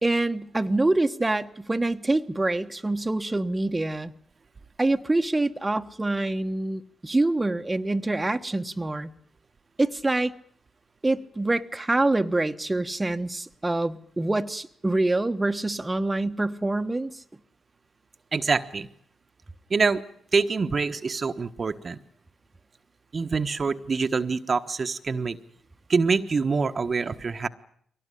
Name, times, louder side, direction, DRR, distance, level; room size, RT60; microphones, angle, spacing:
voice 1, 0.0-4.1 4.8-9.1 9.8-10.3 11.0-17.2, right 2 dB, 20° right, 1.2 m, -25 dB
voice 2, 18.3-18.9 19.7-20.0 20.3-22.0 23.1-25.4 25.9-27.5, right 4 dB, 45° right, 1.3 m, -25 dB
22.5 x 18.5 x 10.0 m
supercardioid pair, 45°, 0 cm